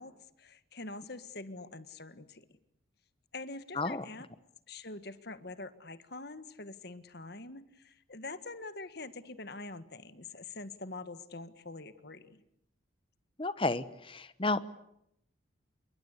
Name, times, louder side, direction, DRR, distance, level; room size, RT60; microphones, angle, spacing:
voice 1, 0.0-2.4 3.3-4.3 4.7-12.4, left 3 dB, 55° left, 12 dB, 1.7 m, -45 dB
voice 2, 13.4-14.6, left 2 dB, 25° left, 14 dB, 1.1 m, -32 dB
27.5 x 23.5 x 8.2 m, 0.77 s
head